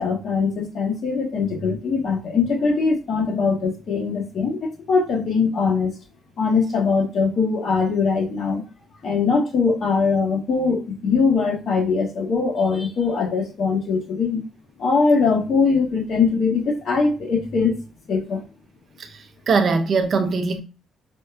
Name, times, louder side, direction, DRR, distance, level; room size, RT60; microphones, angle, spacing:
voice 1, 0.0-5.9 6.4-8.6 9.0-14.4 14.8-17.8 18.1-18.4, left 4 dB, 60° left, 1.3 m, -21 dB
voice 2, 19.0-20.6, right 4 dB, 50° right, 0.6 m, -21 dB
5.2 x 2.3 x 2.4 m
cardioid pair, 90°, 0 cm